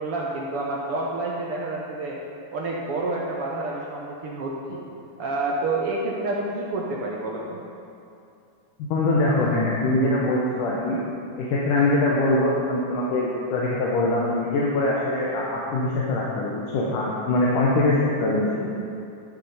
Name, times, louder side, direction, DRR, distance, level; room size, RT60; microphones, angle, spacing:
voice 1, 0.0-2.2 2.5-4.8 5.2-7.6, right 2 dB, 65° right, -3 dB, 1.5 m, -28 dB
voice 2, 8.9-11.0 11.4-18.7, left 2 dB, 85° left, -5 dB, 2.6 m, -23 dB
11.5 x 7.3 x 5.5 m, 2.6 s
omnidirectional pair, 3.6 m